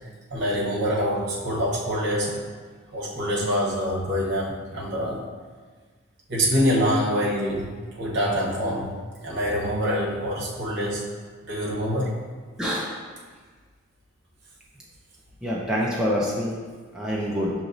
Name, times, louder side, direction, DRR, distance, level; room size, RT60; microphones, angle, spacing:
voice 1, 0.3-2.4 2.9-5.2 6.3-8.9 9.2-11.0 11.5-12.1, equal, 60° right, -5 dB, 1.0 m, -25 dB
voice 2, 12.6-12.9 15.4-16.6 16.9-17.5, equal, 5° right, -6 dB, 0.4 m, -26 dB
6.3 x 2.9 x 2.6 m, 1.5 s
head